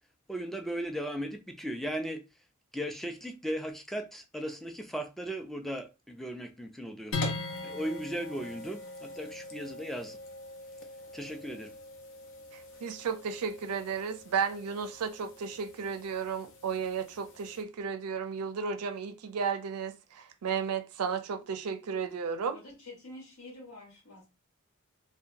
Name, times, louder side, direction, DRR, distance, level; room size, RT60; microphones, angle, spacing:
voice 1, 0.3-2.2 2.7-7.2 7.6-10.2 11.1-11.7, equal, ahead, 0.3 m, -37 dB
sound 1, 7.1-17.6, left 2 dB, 60° left, 0.6 m, -42 dB
voice 2, 12.5-22.6, right 6 dB, 90° right, 0.4 m, -34 dB
voice 3, 22.5-24.3, left 2 dB, 80° left, 1.2 m, -48 dB
2.8 x 2.2 x 2.5 m
head